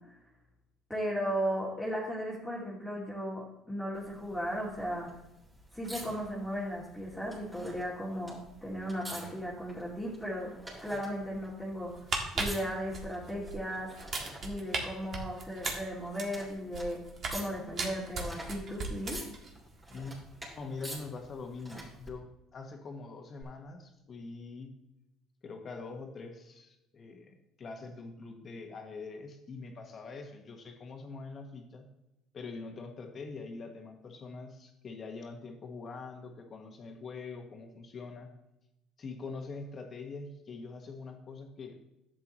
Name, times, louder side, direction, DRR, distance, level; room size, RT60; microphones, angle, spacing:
voice 1, 0.9-5.1 5.7-10.5 10.8-12.0 12.3-13.9 14.4-17.0 17.3-19.2, equal, ahead, -7 dB, 2.4 m, -36 dB
sound 1, 3.9-22.1 23.4-23.5, right 1 dB, 15° right, 3.3 m, -49 dB
sound 2, 11.9-13.6 13.9-14.8 15.1-17.4 17.8-19.5 19.8-20.0, right 4 dB, 45° right, 1.7 m, -36 dB
voice 2, 19.9-20.2 20.5-24.7 25.4-31.9 32.3-38.3 39.0-41.8, left 4 dB, 40° left, 4 dB, 1.4 m, -44 dB
11.0 x 8.0 x 3.1 m, 0.91 s
supercardioid pair, 100°, 0 cm